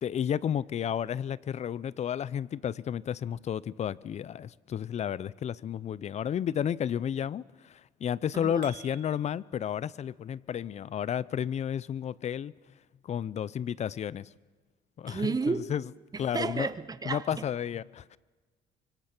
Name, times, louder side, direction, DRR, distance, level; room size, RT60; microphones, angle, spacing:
voice 1, 0.0-12.5 13.0-14.3 15.0-15.8 16.2-16.7 17.0-18.2, left 9 dB, 40° left, 0.6 m, -32 dB
sound 1, 8.1-9.6, right 13 dB, 85° right, 2.9 m, -52 dB
voice 2, 15.1-15.7 16.1-17.4, right 4 dB, 20° right, 1.1 m, -32 dB
25.0 x 24.0 x 6.1 m
cardioid pair, 110°, 17 cm